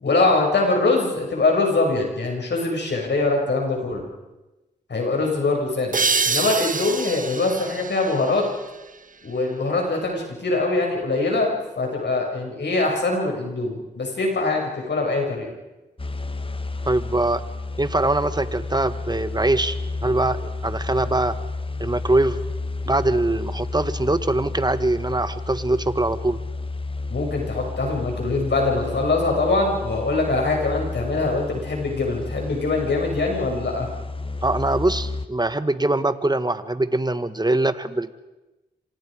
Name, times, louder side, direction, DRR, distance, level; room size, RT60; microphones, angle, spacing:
voice 1, 0.0-4.0 4.9-6.0 6.3-8.4 9.2-15.5 27.1-33.9, left 3 dB, 70° left, 0 dB, 7.1 m, -23 dB
sound 1, 5.9-9.3, right 4 dB, 45° right, 1.4 m, -27 dB
sound 2, 16.0-35.3, left 3 dB, 30° left, 1.5 m, -31 dB
voice 2, 16.9-17.4 17.8-19.8 20.0-21.4 21.8-22.4 22.9-26.4 34.4-38.1, right 2 dB, 20° right, 12 dB, 1.8 m, -22 dB
27.0 x 26.5 x 5.2 m, 1.1 s
cardioid pair, 40°, 19 cm